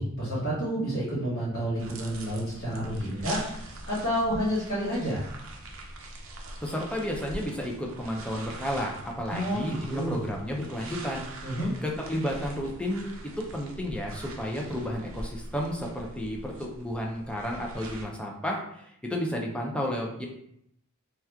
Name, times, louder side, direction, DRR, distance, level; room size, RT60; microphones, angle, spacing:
voice 1, 0.0-3.4 3.9-5.2 9.3-10.2 11.4-11.7, equal, 50° left, -9 dB, 1.4 m, -29 dB
sound 1, 1.8-18.0, right 2 dB, 65° right, 0.5 m, -43 dB
voice 2, 6.6-11.3 11.8-20.3, equal, 5° left, -1 dB, 0.4 m, -32 dB
2.9 x 2.3 x 3.4 m, 0.73 s
head